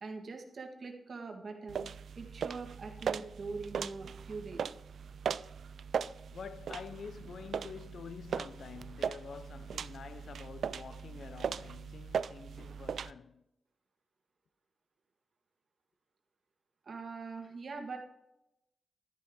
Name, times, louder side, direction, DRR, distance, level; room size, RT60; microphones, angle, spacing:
voice 1, 0.0-1.9 2.2-4.6 16.8-18.0, right 4 dB, 45° right, 1.7 m, -42 dB
sound 1, 1.7-13.1, right 7 dB, 70° right, 0.3 m, -39 dB
voice 2, 6.3-13.4, left 6 dB, 65° left, 0.6 m, -47 dB
11.5 x 10.5 x 3.8 m
wide cardioid pair, 145°, 0 cm